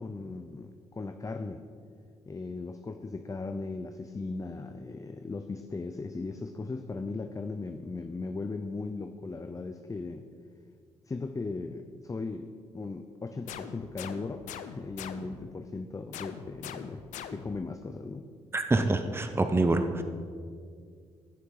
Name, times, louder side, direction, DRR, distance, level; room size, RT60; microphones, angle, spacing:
voice 1, 0.0-1.6 2.3-10.3 11.1-17.0 17.3-18.3, left 3 dB, 25° left, 7 dB, 0.6 m, -37 dB
sound 1, 13.5-15.5 16.1-17.7, left 9 dB, 80° left, 0.6 m, -43 dB
voice 2, 18.5-20.0, right 2 dB, 20° right, 7 dB, 0.8 m, -26 dB
15.0 x 6.6 x 4.8 m, 2.1 s
supercardioid pair, 55°, 13 cm